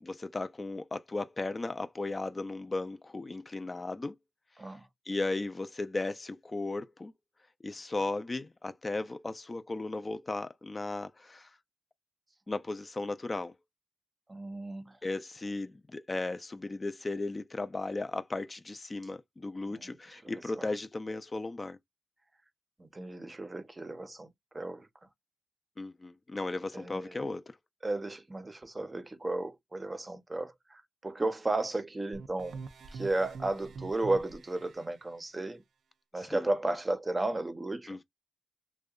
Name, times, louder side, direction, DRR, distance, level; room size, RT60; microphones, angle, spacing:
voice 1, 0.0-4.2 5.1-7.1 7.6-11.5 12.5-13.5 15.0-21.8 25.8-27.4 36.2-36.5 37.9-38.0, left 2 dB, 30° left, 0.4 m, -36 dB
voice 2, 14.3-14.9 19.7-19.9 20.5-20.6 22.8-24.3 24.5-24.9 26.7-27.2 27.8-32.6 32.9-35.6 36.1-38.0, right 2 dB, 25° right, 0.6 m, -34 dB
sound 1, 32.1-34.9, right 4 dB, 75° right, 0.4 m, -45 dB
2.7 x 2.1 x 2.3 m
cardioid pair, 60°, 0 cm